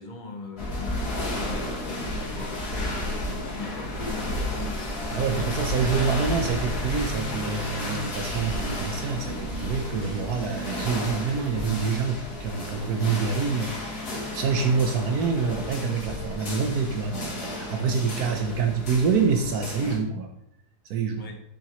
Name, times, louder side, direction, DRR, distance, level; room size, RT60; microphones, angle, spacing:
voice 1, 0.0-4.9 21.1-21.4, left 3 dB, 35° left, 3 dB, 1.1 m, -40 dB
sound 1, 0.6-20.0, left 1 dB, 70° left, 2.4 m, -32 dB
voice 2, 5.1-20.3 20.8-21.2, right 5 dB, 70° right, 4 dB, 1.3 m, -26 dB
7.8 x 7.1 x 3.0 m, 0.73 s
omnidirectional pair, 1.7 m